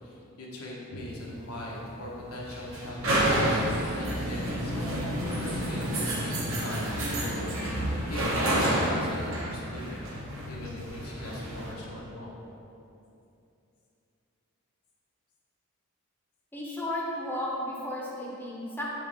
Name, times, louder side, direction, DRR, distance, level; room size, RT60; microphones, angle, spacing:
voice 1, 0.0-10.1 10.4-12.3, left 1 dB, 85° left, -3 dB, 1.2 m, -40 dB
sound 1, 1.1-11.7, right 1 dB, 60° right, 1.1 m, -30 dB
voice 2, 16.5-18.8, left 1 dB, 10° left, -4 dB, 0.7 m, -34 dB
7.6 x 4.6 x 3.5 m, 2.7 s
head